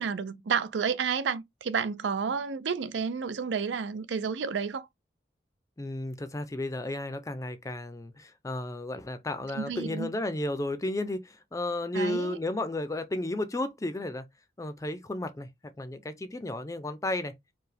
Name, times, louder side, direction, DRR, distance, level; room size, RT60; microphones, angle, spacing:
voice 1, 0.0-4.9 9.5-10.1 11.9-12.4, right 6 dB, 80° right, 0.4 m, -31 dB
voice 2, 5.8-14.3 14.6-15.5 15.8-17.3, left 1 dB, 20° left, 0.5 m, -33 dB
4.6 x 2.1 x 3.3 m
head